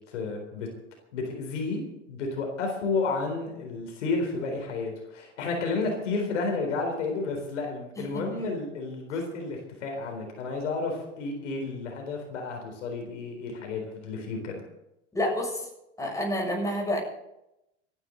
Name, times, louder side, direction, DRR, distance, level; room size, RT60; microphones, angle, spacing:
voice 1, 0.1-0.7 1.1-1.8 2.1-14.6, left 3 dB, 75° left, 2 dB, 4.0 m, -31 dB
voice 2, 8.1-8.5 15.1-15.7 16.0-17.0, left 1 dB, 10° left, -1 dB, 6.9 m, -29 dB
25.0 x 10.5 x 4.0 m, 0.87 s
hypercardioid pair, 95°, 37 cm